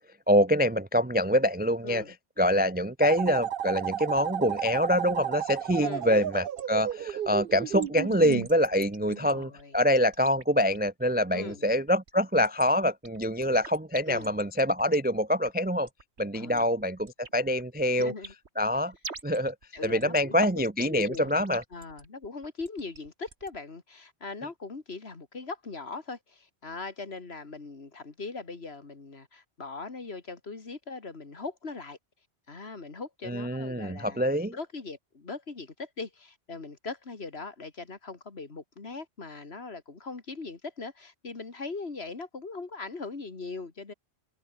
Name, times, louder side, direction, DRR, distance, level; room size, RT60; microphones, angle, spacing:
voice 1, 0.3-2.0 2.4-15.9 16.2-18.1 18.6-18.9 19.2-19.5 19.8-21.6 33.2-34.5, equal, 15° right, 0.4 m, -25 dB
voice 2, 1.8-2.1 5.8-6.3 9.0-9.8 11.3-11.6 14.1-14.3 16.3-16.7 17.9-18.3 19.7-21.3 21.7-32.0 32.5-34.2 34.5-43.9, left 3 dB, 65° left, 2.6 m, -40 dB
sound 1, 3.0-8.5, right 10 dB, 60° right, 0.8 m, -33 dB
sound 2, 6.6-23.6, right 4 dB, 75° right, 2.4 m, -47 dB
omnidirectional pair, 1.1 m